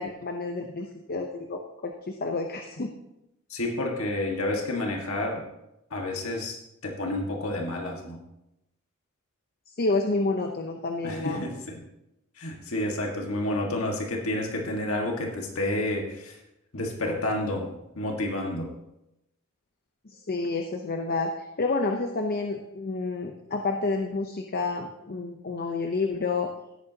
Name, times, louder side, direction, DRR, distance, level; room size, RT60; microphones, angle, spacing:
voice 1, 0.0-2.9 9.8-11.4 20.0-26.5, left 3 dB, 45° left, 4 dB, 0.8 m, -29 dB
voice 2, 3.5-5.4 5.9-6.6 6.8-8.2 11.0-11.5 12.4-16.4 16.7-17.7 17.9-18.7, left 1 dB, 75° left, 0 dB, 1.7 m, -29 dB
16.5 x 9.0 x 2.9 m, 0.88 s
head